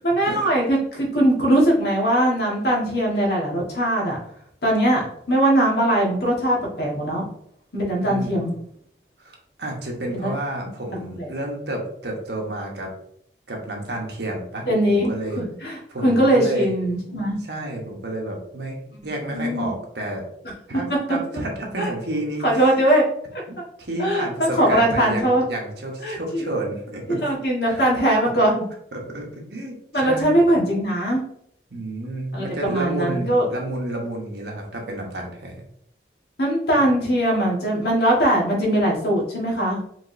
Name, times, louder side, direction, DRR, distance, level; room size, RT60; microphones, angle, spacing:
voice 1, 0.0-4.2 4.6-7.2 7.7-8.5 10.1-10.3 11.2-11.3 14.7-15.7 16.0-17.4 19.3-19.7 21.8-21.9 22.4-23.0 24.0-25.4 26.0-26.4 27.1-28.6 29.9-31.2 32.3-33.4 36.4-39.8, right 1 dB, 60° left, -2 dB, 1.5 m, -20 dB
voice 2, 8.0-8.4 9.2-12.9 13.5-15.4 15.9-16.7 17.4-20.2 20.7-22.7 23.8-27.2 27.7-27.9 28.2-28.3 28.9-30.5 31.7-35.6, right 1 dB, 70° right, 0 dB, 1.1 m, -30 dB
4.9 x 3.5 x 2.6 m, 0.69 s
head